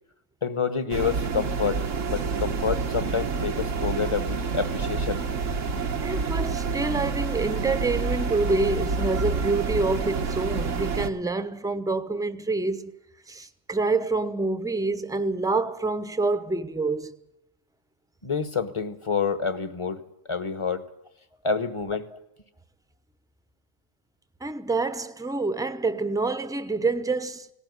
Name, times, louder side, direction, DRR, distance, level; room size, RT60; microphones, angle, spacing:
voice 1, 0.4-5.2 18.2-20.0 20.3-20.8 21.4-22.0, left 5 dB, 25° left, 1.1 m, -28 dB
sound 1, 0.9-11.1, right 5 dB, 85° right, 1.6 m, -28 dB
voice 2, 6.0-13.0 13.3-17.2 24.4-27.5, right 3 dB, 5° right, 0.8 m, -27 dB
18.5 x 18.0 x 9.5 m
omnidirectional pair, 1.3 m